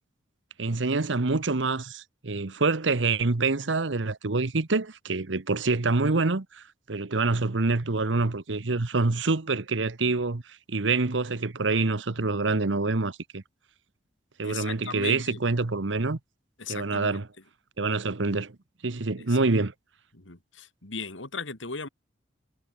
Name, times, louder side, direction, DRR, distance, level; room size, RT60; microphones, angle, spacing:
voice 1, 0.6-10.4 10.7-13.4 14.4-16.2 16.7-17.3 17.8-18.6 18.8-19.7, right 3 dB, 75° right, 1.1 m, -26 dB
voice 2, 14.4-15.4 16.6-17.2 19.3-19.4 20.1-21.9, left 5 dB, 85° left, 3.1 m, -37 dB
head